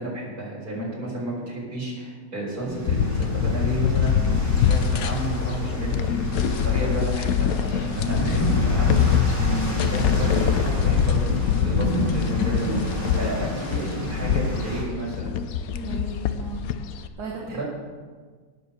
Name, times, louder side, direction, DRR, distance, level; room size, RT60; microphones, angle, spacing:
voice 1, 0.0-15.4 17.5-17.6, right 1 dB, 70° right, -4 dB, 5.1 m, -32 dB
sound 1, 2.6-14.8, equal, 10° left, 4.0 m, -30 dB
sound 2, 2.9-17.1, left 8 dB, 70° left, 1.1 m, -24 dB
voice 2, 15.7-16.6 17.0-17.6, right 3 dB, 85° right, -3 dB, 2.2 m, -35 dB
17.5 x 7.2 x 6.8 m, 1.5 s
omnidirectional pair, 1.6 m